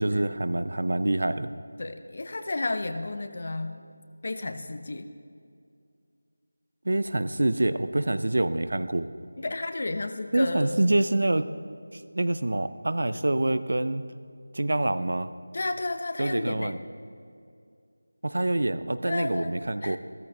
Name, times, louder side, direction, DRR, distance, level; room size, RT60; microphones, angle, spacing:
voice 1, 0.0-1.5 6.8-9.1 10.3-11.5 11.9-14.0 14.5-15.3 16.2-16.8 18.2-20.0, right 1 dB, 65° right, 13 dB, 0.6 m, -26 dB
voice 2, 1.8-3.8 4.2-5.1 9.4-10.8 13.1-13.4 15.5-16.8 19.1-19.5 19.8-20.0, left 2 dB, 45° left, 8 dB, 0.9 m, -32 dB
15.5 x 13.5 x 3.8 m, 2.3 s
figure-of-eight pair, 170°, 0 cm